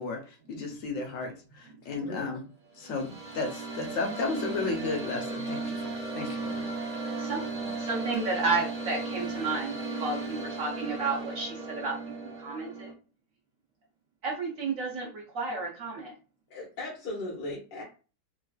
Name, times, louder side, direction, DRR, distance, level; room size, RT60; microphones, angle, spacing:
voice 1, 0.0-2.4 2.8-5.7 6.2-6.6, left 3 dB, 60° left, 2 dB, 0.9 m, -33 dB
sound 1, 2.7-12.9, right 3 dB, 45° right, 0.5 m, -36 dB
voice 2, 7.1-7.5 7.7-12.9 14.2-16.1, right 3 dB, 60° right, -1 dB, 1.0 m, -32 dB
voice 3, 16.5-17.8, left 2 dB, 85° left, -5 dB, 1.6 m, -37 dB
4.0 x 2.4 x 2.3 m, 0.35 s
omnidirectional pair, 1.9 m